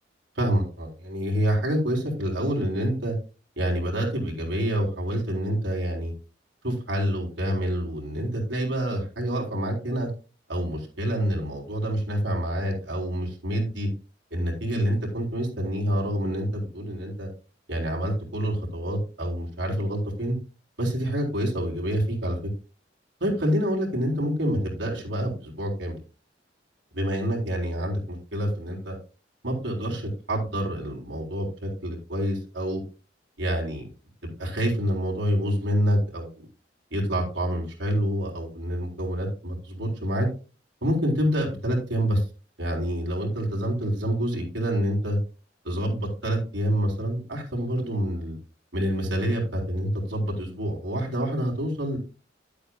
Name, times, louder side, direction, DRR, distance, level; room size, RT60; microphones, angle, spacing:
voice 1, 0.4-3.1 3.6-6.1 6.6-10.1 10.5-13.9 14.3-17.3 17.7-20.4 20.8-22.4 23.2-26.0 26.9-29.0 29.4-32.8 33.4-33.9 34.4-36.4 36.9-40.3 40.8-42.2 42.6-45.2 45.6-48.4 48.7-52.0, equal, 85° right, -1 dB, 3.9 m, -27 dB
11.0 x 8.3 x 2.3 m, 0.35 s
head